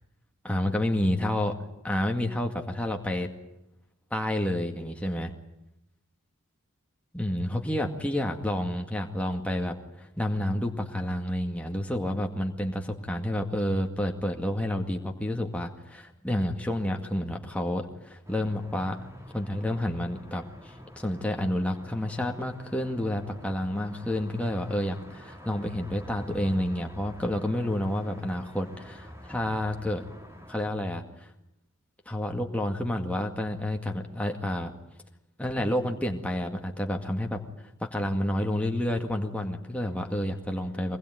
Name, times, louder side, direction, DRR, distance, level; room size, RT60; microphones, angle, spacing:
voice 1, 0.4-3.3 4.1-5.3 7.1-19.1 19.3-30.0 30.5-31.3 32.1-34.7 35.4-37.4 37.8-41.0, left 1 dB, 5° left, 2 dB, 2.1 m, -29 dB
sound 1, 18.2-30.7, equal, 10° right, 3.1 m, -47 dB
24.5 x 20.5 x 9.4 m, 0.87 s
head